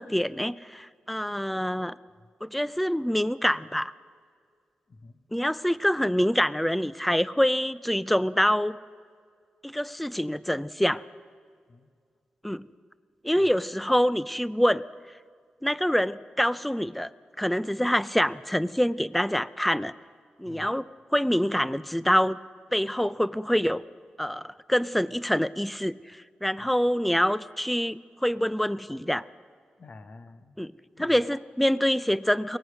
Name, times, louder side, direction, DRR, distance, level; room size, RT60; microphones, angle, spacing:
voice 1, 0.0-2.0 2.4-3.9 5.3-8.8 9.6-11.0 12.4-12.6 13.2-14.8 15.6-17.1 17.4-19.9 20.4-22.4 22.7-23.8 24.2-29.2 30.6-30.7 31.0-32.6, equal, 5° left, 17 dB, 0.4 m, -26 dB
voice 2, 4.9-5.2 11.7-11.9 13.3-13.5 20.4-20.7 26.6-26.7 29.8-30.6 31.0-31.4, left 3 dB, 45° left, 10 dB, 1.0 m, -49 dB
23.0 x 18.5 x 6.2 m, 2.1 s
wide cardioid pair, 155°, 3 cm